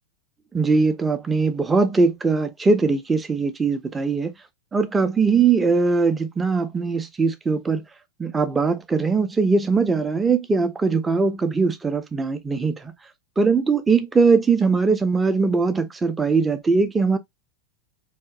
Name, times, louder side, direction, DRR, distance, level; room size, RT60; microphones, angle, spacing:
voice 1, 0.5-4.3 4.7-7.9 8.2-12.8 13.4-17.2, right 4 dB, 15° right, 0.4 m, -21 dB
2.8 x 2.5 x 2.3 m
figure-of-eight pair, 90°, 0 cm